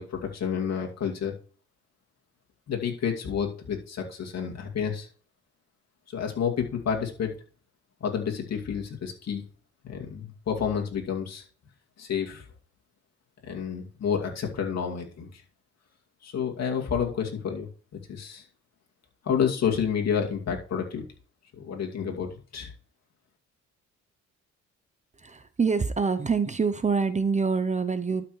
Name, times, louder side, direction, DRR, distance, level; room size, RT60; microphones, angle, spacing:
voice 1, 0.0-1.3 2.7-5.1 6.1-7.4 8.0-9.4 9.8-11.4 12.0-12.4 13.4-15.4 16.2-18.4 19.2-21.0 21.6-22.7, left 7 dB, 60° left, 0 dB, 2.4 m, -30 dB
voice 2, 25.2-28.2, right 5 dB, 25° right, 11 dB, 0.7 m, -26 dB
12.0 x 5.9 x 3.2 m, 0.41 s
cardioid pair, 90°, 30 cm